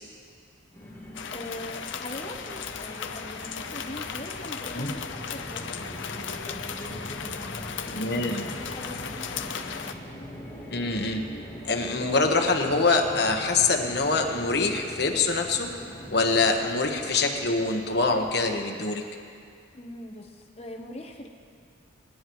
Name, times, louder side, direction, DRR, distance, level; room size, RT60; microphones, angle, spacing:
sound 1, 0.7-18.5, equal, 15° left, 2.2 m, -42 dB
sound 2, 1.1-9.9, left 6 dB, 75° left, 0.7 m, -36 dB
voice 1, 1.3-6.7 7.3-9.9 19.7-21.3, left 1 dB, 30° left, 3 dB, 1.0 m, -42 dB
voice 2, 7.9-8.5 10.7-11.2 11.6-15.7 16.1-19.0, left 3 dB, 55° left, 3 dB, 1.2 m, -24 dB
25.0 x 10.5 x 3.1 m, 2.3 s
head